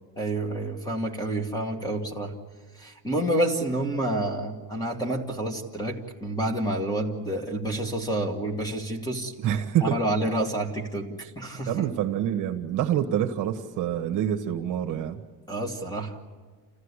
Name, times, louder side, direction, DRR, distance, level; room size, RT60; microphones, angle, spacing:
voice 1, 0.2-2.3 2.8-9.3 9.8-11.9 15.5-16.2, right 1 dB, 10° left, 4 dB, 2.2 m, -29 dB
voice 2, 9.4-10.0 11.7-15.2, right 10 dB, 50° right, 5 dB, 1.5 m, -26 dB
29.0 x 15.0 x 9.9 m, 1.5 s
cardioid pair, 150°, 40 cm